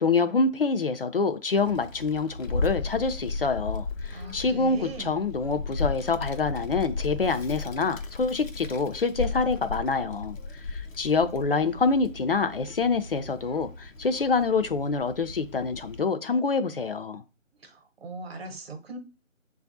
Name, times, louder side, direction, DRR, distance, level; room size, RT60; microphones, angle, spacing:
voice 1, 0.0-17.2, left 4 dB, 50° left, 0.4 m, -26 dB
Child speech kid speaking, 1.6-16.0, left 3 dB, 90° left, 0.7 m, -35 dB
voice 2, 4.1-5.3 17.6-19.0, right 3 dB, 50° right, 1.0 m, -40 dB
6.9 x 2.4 x 2.5 m
figure-of-eight pair, 155°, 38 cm